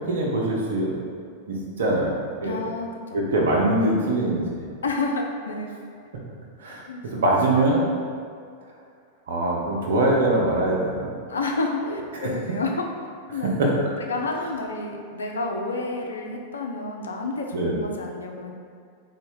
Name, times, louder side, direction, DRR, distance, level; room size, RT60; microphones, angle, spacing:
voice 1, 0.1-1.0 1.5-2.6 3.1-4.6 6.6-7.8 9.3-11.1 11.9-12.0 12.2-12.3 13.6-13.7 17.5-17.8, right 1 dB, 60° right, -2 dB, 0.6 m, -23 dB
voice 2, 2.4-3.2 4.8-5.7 6.9-7.2 11.3-12.9 13.3-13.5 14.0-18.5, left 3 dB, 70° left, 2 dB, 0.4 m, -30 dB
3.8 x 2.1 x 3.6 m, 2.2 s
figure-of-eight pair, 90°, 0 cm